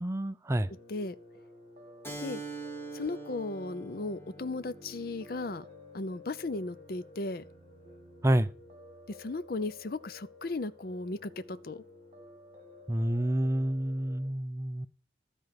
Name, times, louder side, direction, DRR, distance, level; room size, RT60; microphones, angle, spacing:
voice 1, 0.0-0.7 8.2-8.5 12.9-14.9, right 1 dB, 15° right, 0.4 m, -28 dB
Piano, 0.5-14.2, left 2 dB, 35° right, 2.5 m, -53 dB
Keyboard (musical), 2.0-7.2, right 3 dB, 15° left, 2.1 m, -45 dB
voice 2, 2.9-5.6 5.9-7.4 9.1-11.8, left 2 dB, 55° left, 0.6 m, -36 dB
13.0 x 4.5 x 6.7 m
head